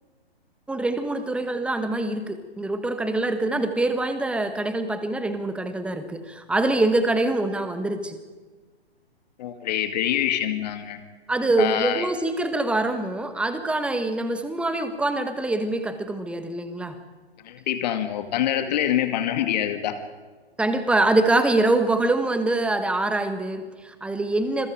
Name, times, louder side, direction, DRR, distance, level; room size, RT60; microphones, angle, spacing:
voice 1, 0.7-8.2 11.3-17.0 20.6-24.7, right 2 dB, 5° right, 10 dB, 1.4 m, -24 dB
voice 2, 9.4-11.0 11.6-12.1 17.4-20.0, left 11 dB, 40° left, 8 dB, 2.4 m, -25 dB
26.5 x 22.5 x 5.0 m, 1.4 s
figure-of-eight pair, 130°, 32 cm